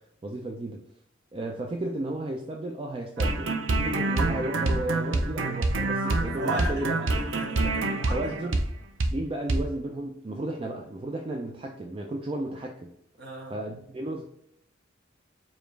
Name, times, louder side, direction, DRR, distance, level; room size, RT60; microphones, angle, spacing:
voice 1, 0.2-0.8 1.3-7.1 8.1-8.6 9.1-12.9 13.5-14.3, right 1 dB, 30° right, 1 dB, 0.4 m, -33 dB
sound 1, 3.2-8.7 9.0-9.2 9.5-9.6, right 2 dB, 85° right, 0.6 m, -26 dB
voice 2, 6.2-8.4 13.2-13.5, equal, 60° right, -1 dB, 1.3 m, -37 dB
5.0 x 2.4 x 3.1 m, 0.75 s
head